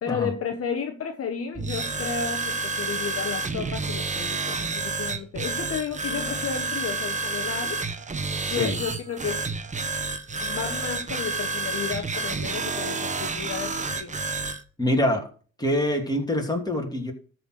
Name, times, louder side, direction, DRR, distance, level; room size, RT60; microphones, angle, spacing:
voice 1, 0.0-7.8 8.5-9.5 10.4-14.1, left 6 dB, 50° left, 6 dB, 1.2 m, -32 dB
sound 1, 1.5-14.6, right 3 dB, 25° right, 1.1 m, -29 dB
voice 2, 8.4-8.8 14.8-15.3 15.6-17.1, left 1 dB, 15° left, 1 dB, 2.9 m, -25 dB
13.0 x 4.4 x 6.4 m, 0.41 s
cardioid pair, 90°, 30 cm